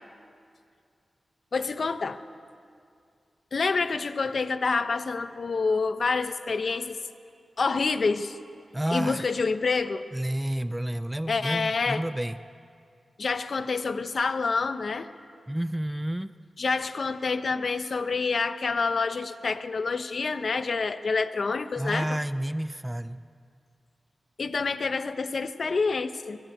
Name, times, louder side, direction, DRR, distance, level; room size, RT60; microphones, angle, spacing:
voice 1, 1.5-2.2 3.5-7.0 7.6-8.4 8.9-10.1 11.3-12.0 13.2-15.1 16.6-22.2 24.4-26.4, left 4 dB, 55° left, 10 dB, 1.1 m, -27 dB
voice 2, 8.7-9.3 10.1-12.4 15.5-16.3 21.8-23.2, right 1 dB, 10° right, 12 dB, 0.6 m, -30 dB
26.0 x 23.0 x 8.0 m, 2.3 s
wide cardioid pair, 110°, 0 cm